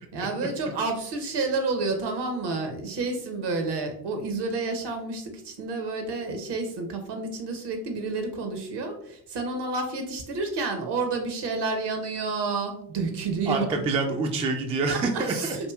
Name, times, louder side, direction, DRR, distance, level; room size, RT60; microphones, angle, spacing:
voice 1, 0.1-13.8 14.9-15.7, right 3 dB, 60° right, 5 dB, 0.8 m, -30 dB
voice 2, 13.5-15.6, right 3 dB, 15° right, 3 dB, 0.3 m, -26 dB
2.9 x 2.6 x 2.3 m, 0.70 s
hypercardioid pair, 45°, 47 cm